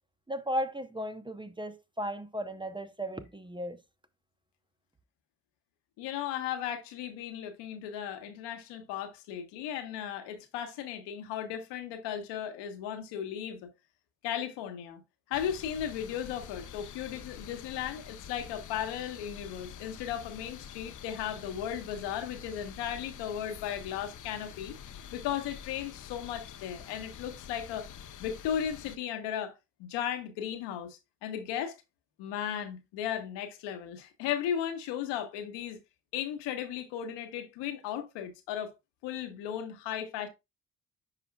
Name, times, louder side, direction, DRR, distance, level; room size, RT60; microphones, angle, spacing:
voice 1, 0.3-3.8, equal, 10° right, 0.7 m, -35 dB
voice 2, 6.0-13.7 14.2-15.0 15.3-24.8 25.1-27.9 28.2-29.5 29.8-31.7 32.2-35.8 36.1-38.7 39.0-40.3, left 9 dB, 75° left, 1.2 m, -36 dB
sound 1, 15.3-29.0, left 8 dB, 45° left, 0.8 m, -47 dB
9.8 x 4.9 x 2.3 m
hypercardioid pair, 45°, 43 cm